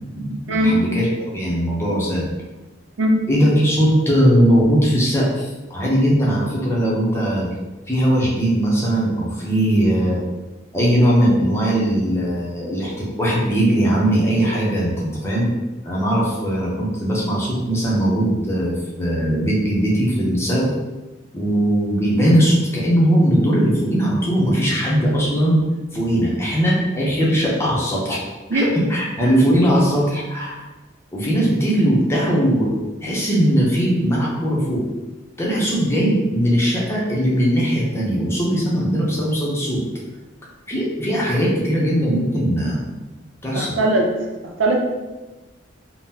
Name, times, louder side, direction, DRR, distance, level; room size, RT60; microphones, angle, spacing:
voice 1, 0.6-2.3 3.3-7.5 7.9-10.2 10.7-15.5 15.8-20.7 21.3-25.6 25.9-28.2 28.5-30.6 31.1-32.7 33.0-34.8 35.4-39.8 40.7-42.8 43.4-43.8, equal, 15° left, -5 dB, 0.6 m, -19 dB
voice 2, 43.5-44.1 44.6-44.8, right 1 dB, 90° right, 1 dB, 0.5 m, -18 dB
3.6 x 2.0 x 2.8 m, 1.1 s
head